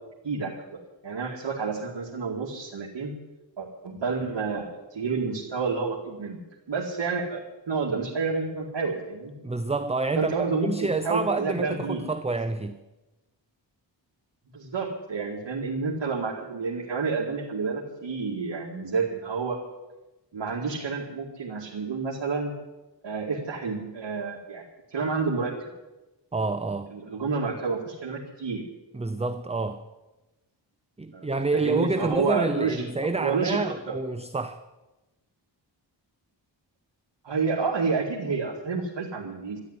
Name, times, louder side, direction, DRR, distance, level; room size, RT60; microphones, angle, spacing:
voice 1, 0.2-3.1 3.6-6.4 6.7-7.4 7.7-9.3 10.2-12.0 14.5-19.6 20.3-22.5 23.0-24.6 24.9-25.5 26.9-28.6 31.1-31.3 31.5-32.9 33.2-34.0 37.2-39.6, right 4 dB, 70° right, 2.3 m, -29 dB
voice 2, 9.4-12.8 26.3-26.9 28.9-29.9 31.0-34.6, right 3 dB, 15° right, 0.6 m, -28 dB
13.0 x 11.0 x 9.7 m
wide cardioid pair, 125°, 45 cm